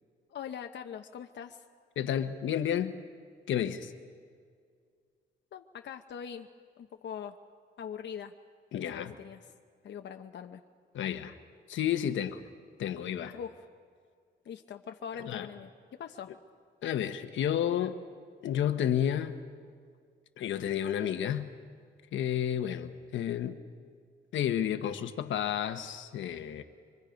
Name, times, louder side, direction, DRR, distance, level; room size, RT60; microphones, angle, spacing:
voice 1, 0.3-1.6 5.5-6.5 6.8-7.4 7.8-8.3 8.7-9.4 9.8-10.6 13.3-13.7 14.4-16.3, left 8 dB, 70° left, 5 dB, 0.9 m, -42 dB
voice 2, 2.0-3.0 3.5-3.9 8.7-9.1 10.9-11.3 11.7-12.4 12.8-13.4 15.3-15.5 16.8-18.0 18.4-19.4 20.4-21.5 22.1-23.6 24.3-26.6, left 10 dB, 90° left, 8 dB, 1.1 m, -31 dB
25.0 x 24.5 x 5.2 m, 2.1 s
cardioid pair, 90°, 19 cm